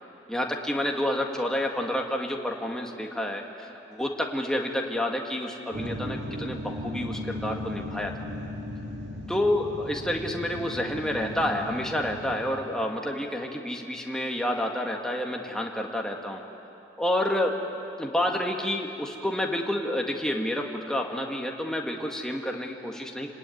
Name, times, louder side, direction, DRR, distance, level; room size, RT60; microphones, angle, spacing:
voice 1, 0.3-8.3 9.3-16.4 17.0-17.5 18.0-23.3, left 1 dB, 5° left, 1 dB, 1.8 m, -29 dB
sound 1, 5.7-12.3, left 1 dB, 85° right, 2.8 m, -36 dB
27.5 x 19.5 x 9.4 m, 2.9 s
head